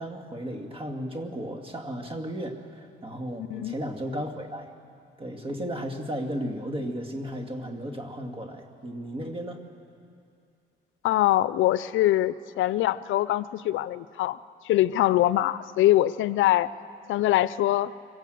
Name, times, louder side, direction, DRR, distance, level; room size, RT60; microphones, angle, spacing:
voice 1, 0.0-4.7 5.2-9.6, equal, 25° right, 4 dB, 2.2 m, -34 dB
voice 2, 11.0-14.4 14.6-16.7 17.1-17.9, left 14 dB, 80° left, 16 dB, 0.5 m, -23 dB
24.5 x 16.5 x 7.8 m, 2.5 s
cardioid pair, 90°, 20 cm